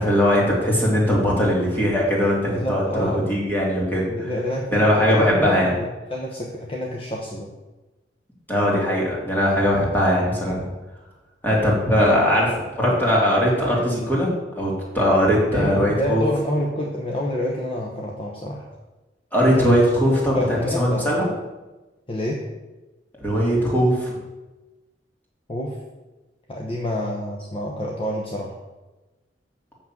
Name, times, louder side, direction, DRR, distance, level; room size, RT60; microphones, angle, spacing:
voice 1, 0.0-4.3 4.7-5.7 8.5-10.7 11.4-16.2 19.3-21.3 23.2-24.1, equal, 10° left, -4 dB, 2.7 m, -20 dB
voice 2, 2.5-3.3 4.1-7.5 15.5-18.6 19.5-19.8 20.3-21.2 22.1-22.4 25.5-25.8 26.5-28.5, left 1 dB, 30° left, -2 dB, 1.0 m, -28 dB
6.6 x 6.1 x 7.3 m, 1.1 s
head